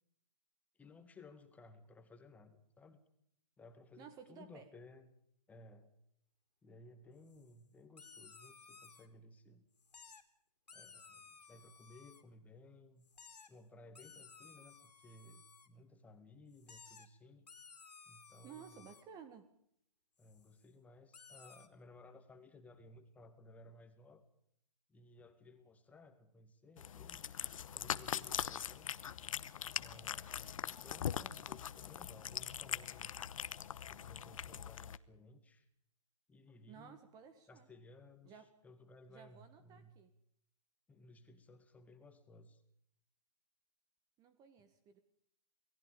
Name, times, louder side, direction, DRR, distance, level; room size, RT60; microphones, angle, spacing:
voice 1, 0.7-3.0 3.6-5.1 5.5-5.9 6.6-9.7 10.7-13.1 13.5-17.5 18.1-19.0 20.2-24.2 24.9-27.2 27.7-28.9 29.7-33.1 33.9-35.7 36.3-37.0 37.5-40.0 40.9-42.6, left 2 dB, 5° left, 7 dB, 2.1 m, -59 dB
voice 2, 4.0-4.7 18.4-19.5 36.7-37.7 38.2-38.5 39.1-40.1 44.2-45.0, right 7 dB, 20° right, 11 dB, 1.5 m, -55 dB
sound 1, 7.3-7.5 8.0-9.1 9.8-10.2 10.7-12.2 13.0-13.5 13.9-15.7 16.5-17.1 17.5-19.0 20.2-20.7 21.1-21.7, left 5 dB, 85° left, 3.7 m, -58 dB
Cat, 26.8-35.0, left 9 dB, 55° left, 1.1 m, -42 dB
29.0 x 19.0 x 5.2 m, 0.70 s
hypercardioid pair, 145°, 20 cm